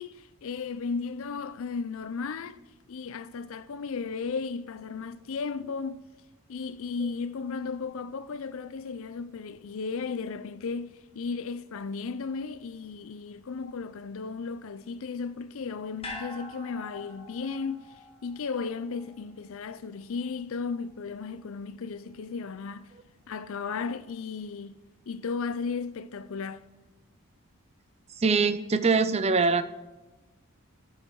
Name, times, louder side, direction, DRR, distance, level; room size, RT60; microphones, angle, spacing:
voice 1, 0.0-2.6 2.9-6.0 6.5-17.9 18.2-22.9 23.3-24.8 25.1-26.6, left 5 dB, 65° left, 0.5 m, -35 dB
sound 1, 16.0-20.4 20.7-20.8, left 2 dB, 25° left, 1.8 m, -45 dB
voice 2, 28.2-29.6, right 4 dB, 30° right, 0.5 m, -23 dB
8.4 x 6.5 x 4.6 m
head